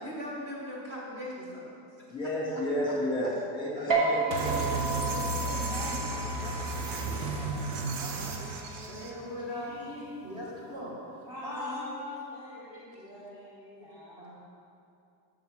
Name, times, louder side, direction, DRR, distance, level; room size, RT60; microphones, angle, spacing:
voice 1, 0.0-2.1 2.5-2.9 3.8-3.9 6.4-6.6 7.9-8.4 8.9-11.0 11.4-13.0 13.8-14.4, left 1 dB, 30° right, -4 dB, 1.5 m, -41 dB
voice 2, 2.1-5.0, equal, 10° left, -5 dB, 2.0 m, -32 dB
sound 1, 3.9-10.7, right 2 dB, 65° right, 1.7 m, -34 dB
sound 2, 4.3-9.1, right 4 dB, 85° right, 1.0 m, -33 dB
voice 3, 5.1-7.8 8.4-10.1 11.3-14.4, left 2 dB, 5° right, -6 dB, 0.6 m, -44 dB
9.1 x 7.3 x 3.6 m, 2.5 s
cardioid pair, 160°, 50 cm